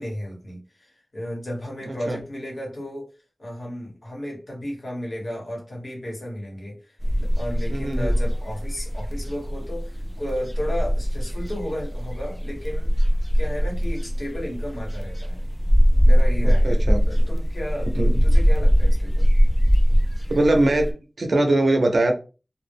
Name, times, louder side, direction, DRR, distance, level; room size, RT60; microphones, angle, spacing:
voice 1, 0.0-3.1 3.4-15.4 16.0-16.8 17.1-19.3, equal, 55° left, -1 dB, 1.1 m, -34 dB
voice 2, 1.9-2.2 7.7-8.2 16.4-17.0 18.0-18.2 20.4-22.1, right 2 dB, 90° right, 4 dB, 0.5 m, -22 dB
sound 1, 7.0-20.9, equal, ahead, 0.6 m, -21 dB
2.2 x 2.0 x 3.4 m, 0.33 s
wide cardioid pair, 70°, 0 cm